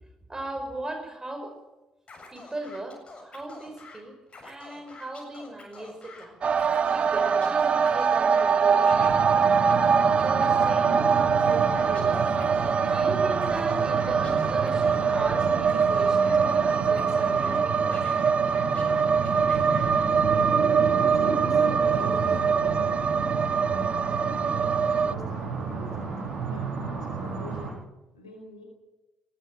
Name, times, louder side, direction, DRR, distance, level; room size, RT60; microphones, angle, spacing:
voice 1, 0.3-1.6 2.3-4.2 4.4-6.4 6.9-9.7 10.2-12.4 12.8-18.1, right 1 dB, 20° right, 6 dB, 5.9 m, -38 dB
Scratching (performance technique), 2.1-4.0 4.3-6.3 6.5-8.5 8.8-11.0 11.4-13.1 13.4-15.3 15.6-17.6 17.9-20.1, left 3 dB, 35° left, 7.7 m, -47 dB
sound 1, 6.4-25.1, right 6 dB, 40° right, 0.6 m, -23 dB
sound 2, 8.9-27.7, right 5 dB, 60° right, 6.6 m, -32 dB
voice 2, 20.9-23.0 23.5-26.1 26.5-27.8 28.1-28.7, left 1 dB, 90° left, 2 dB, 4.6 m, -44 dB
19.5 x 15.0 x 9.0 m, 1.0 s
figure-of-eight pair, 45°, 3 cm